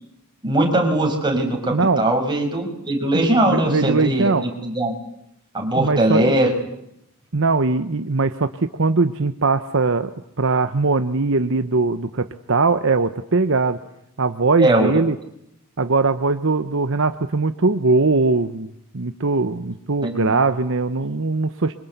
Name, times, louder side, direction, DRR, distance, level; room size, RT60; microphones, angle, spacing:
voice 1, 0.4-4.3 4.6-4.9 5.5-6.5 14.6-14.9 20.0-20.2, right 1 dB, 20° right, 2 dB, 6.2 m, -20 dB
voice 2, 1.7-2.1 3.1-4.5 5.7-6.3 7.3-10.1 10.4-13.8 14.2-15.1 15.8-21.7, right 3 dB, 60° right, 10 dB, 1.0 m, -20 dB
28.5 x 24.5 x 8.2 m, 0.78 s
head